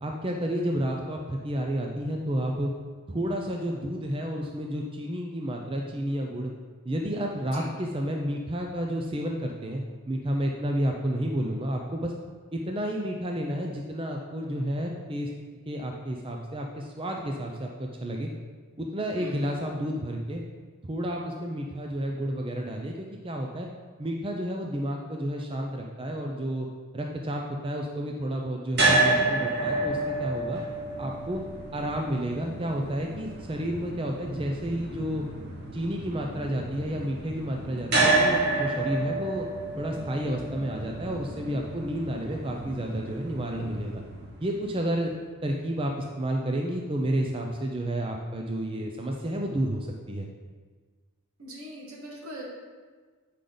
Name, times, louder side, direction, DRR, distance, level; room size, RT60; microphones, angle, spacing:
voice 1, 0.0-2.7 3.1-6.5 6.9-12.1 12.5-15.3 15.7-18.3 18.8-20.4 20.9-23.7 24.0-26.7 26.9-30.6 31.0-31.4 31.7-35.2 35.7-39.5 39.8-44.0 44.4-45.1 45.4-50.3, right 1 dB, 25° right, 1 dB, 0.5 m, -31 dB
sound 1, 28.7-44.9, right 2 dB, 45° right, 1.5 m, -30 dB
voice 2, 51.4-52.4, equal, 75° right, -3 dB, 1.8 m, -41 dB
8.3 x 5.0 x 3.9 m, 1.5 s
head